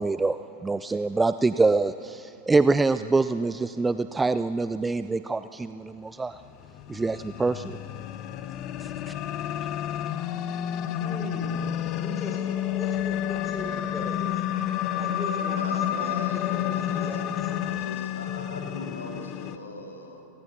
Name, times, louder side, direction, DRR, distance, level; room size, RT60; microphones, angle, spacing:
voice 1, 0.0-6.4 6.9-7.8 8.8-9.1, right 3 dB, 10° right, 12 dB, 0.4 m, -25 dB
sound 1, 6.5-19.6, left 10 dB, 40° left, 0.9 m, -30 dB
voice 2, 11.0-11.7 12.0-14.4 14.9-17.7, left 1 dB, 15° left, 3 dB, 5.3 m, -40 dB
voice 3, 15.5-17.1 17.7-20.2, left 2 dB, 75° left, 2 dB, 2.9 m, -40 dB
24.5 x 18.5 x 7.1 m, 2.9 s
figure-of-eight pair, 90°, 0 cm